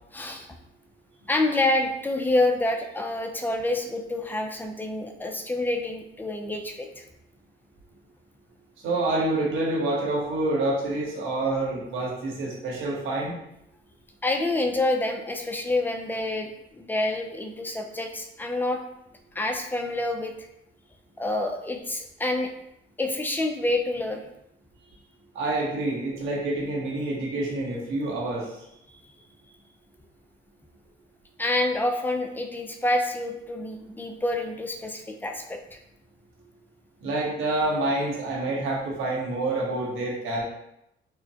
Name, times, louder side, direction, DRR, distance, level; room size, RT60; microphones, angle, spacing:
voice 1, 0.1-0.5 1.3-7.0 14.2-18.8 19.3-20.5 21.2-22.5 23.0-24.2 31.4-35.8, left 2 dB, 10° left, 4 dB, 0.5 m, -27 dB
voice 2, 8.8-13.3 25.3-28.5 37.0-40.4, right 2 dB, 85° right, -4 dB, 1.2 m, -27 dB
4.4 x 2.1 x 2.8 m, 0.81 s
cardioid pair, 90°, 20 cm